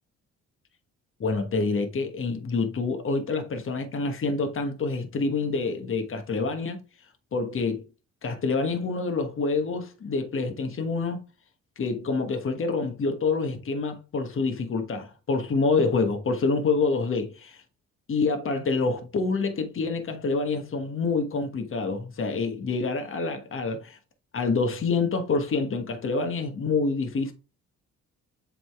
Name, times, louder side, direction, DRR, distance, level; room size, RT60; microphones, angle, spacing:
voice 1, 1.2-6.8 7.3-7.8 8.2-11.2 11.8-17.6 18.1-24.0 24.3-27.3, left 4 dB, 45° left, 1.4 m, -27 dB
7.8 x 3.9 x 3.6 m
cardioid pair, 90°, 30 cm